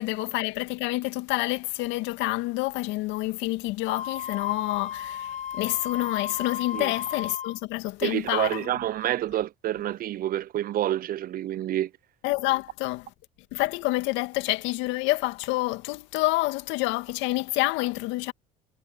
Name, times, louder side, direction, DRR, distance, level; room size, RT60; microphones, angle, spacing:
voice 1, 0.0-8.7 12.2-13.1 13.5-18.3, left 20 dB, 70° left, 2.1 m, -28 dB
Wind instrument woodwind instrument, 3.9-7.6, left 9 dB, 40° left, 4.2 m, -34 dB
voice 2, 8.0-11.9, right 12 dB, 50° right, 0.6 m, -28 dB
hypercardioid pair, 75°, 20 cm